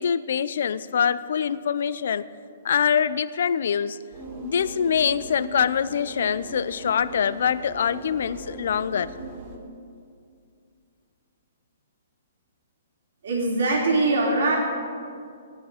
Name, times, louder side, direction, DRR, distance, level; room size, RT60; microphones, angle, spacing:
voice 1, 0.0-2.2 2.6-4.0 4.4-9.1, left 7 dB, 65° left, 16 dB, 0.5 m, -24 dB
sound 1, 4.1-9.6, right 2 dB, 40° right, 2.3 m, -39 dB
voice 2, 13.2-14.6, right 2 dB, 75° right, -2 dB, 3.3 m, -22 dB
16.5 x 12.0 x 5.0 m, 2.3 s
hypercardioid pair, 155°, 0 cm